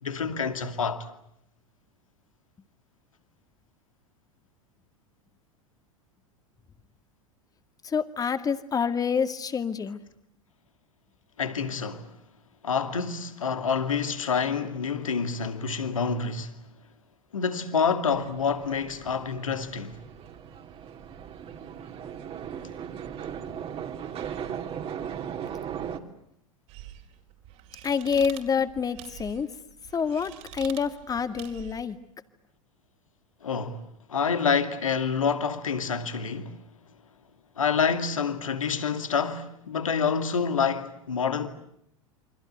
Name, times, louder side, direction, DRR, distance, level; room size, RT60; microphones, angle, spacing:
voice 1, 0.0-1.1 11.4-12.1 12.6-16.6 17.3-20.0 33.4-33.8 34.1-36.6 37.6-41.5, left 6 dB, 75° left, 2.5 m, -27 dB
voice 2, 7.8-10.0 23.4-23.5 27.8-29.5 29.9-32.0, left 6 dB, 20° left, 2.1 m, -27 dB
sound 1, 18.1-26.0, right 8 dB, 35° right, 3.0 m, -38 dB
sound 2, 26.7-31.9, right 12 dB, 50° right, 4.3 m, -46 dB
29.0 x 25.5 x 8.1 m
figure-of-eight pair, 85°, 17 cm